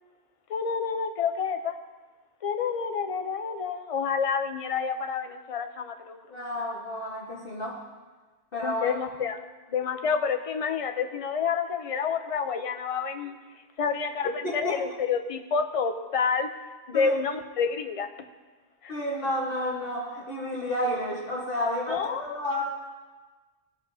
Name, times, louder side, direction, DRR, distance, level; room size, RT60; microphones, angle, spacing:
voice 1, 0.5-1.7 2.4-6.2 8.6-9.4 9.7-13.4 13.8-16.5 16.9-18.1 18.8-19.0 21.9-22.4, left 6 dB, 40° left, 7 dB, 0.6 m, -29 dB
voice 2, 6.3-7.8 8.5-9.0 14.4-14.8 16.9-17.1 18.9-22.6, left 1 dB, 60° left, -4 dB, 1.5 m, -31 dB
18.0 x 6.9 x 2.7 m, 1.3 s
omnidirectional pair, 1.1 m